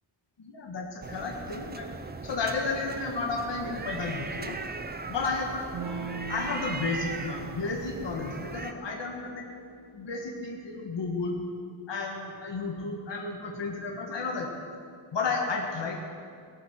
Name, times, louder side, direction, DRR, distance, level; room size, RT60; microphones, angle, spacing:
voice 1, 0.4-1.9 2.2-4.6 5.1-5.6 6.0-9.5 9.9-11.4 11.9-14.5 15.1-15.9, left 4 dB, 60° left, 0 dB, 1.5 m, -32 dB
sound 1, 1.0-8.7, right 3 dB, 20° right, 0.5 m, -39 dB
Electric guitar / Strum, 5.7-10.8, right 5 dB, 65° right, 1.6 m, -42 dB
17.0 x 9.8 x 6.0 m, 2.3 s
wide cardioid pair, 165°, 48 cm